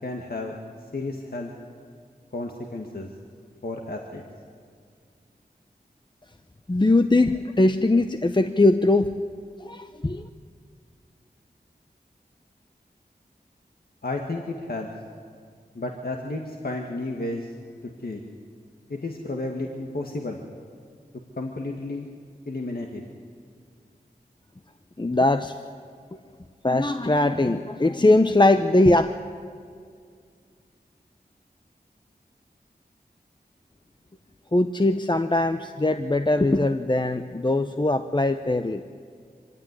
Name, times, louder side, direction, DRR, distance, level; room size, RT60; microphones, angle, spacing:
voice 1, 0.0-0.6 0.9-1.5 2.3-3.1 3.6-4.2 14.0-14.9 15.8-17.5 18.0-18.2 18.9-20.4 21.4-22.1 22.5-23.0, left 2 dB, 65° left, 1 dB, 1.9 m, -32 dB
voice 2, 6.7-9.1 9.6-10.2 25.0-25.5 26.6-29.1 34.5-38.9, left 2 dB, 25° left, 8 dB, 0.8 m, -21 dB
24.5 x 16.5 x 9.9 m, 2.2 s
wide cardioid pair, 45°, 17 cm